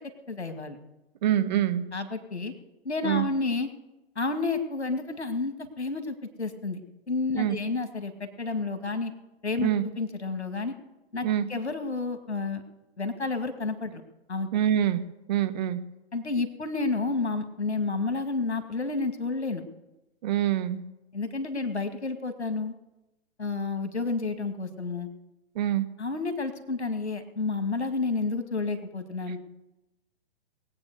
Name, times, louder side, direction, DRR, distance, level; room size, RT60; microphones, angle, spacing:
voice 1, 0.3-0.8 1.9-2.5 2.8-3.7 4.2-6.8 7.1-9.1 9.4-10.7 11.1-12.6 13.0-14.0 14.3-14.5 16.1-19.6 21.1-22.7 23.4-25.1 26.0-29.4, left 3 dB, 85° left, 7 dB, 2.2 m, -30 dB
voice 2, 1.2-1.8 3.0-3.2 7.3-7.6 9.6-9.8 11.2-11.5 14.5-15.0 15.3-15.8 20.2-20.8 25.5-25.9, right 11 dB, 40° right, 10 dB, 1.3 m, -25 dB
20.5 x 8.7 x 6.7 m, 0.97 s
figure-of-eight pair, 125°, 32 cm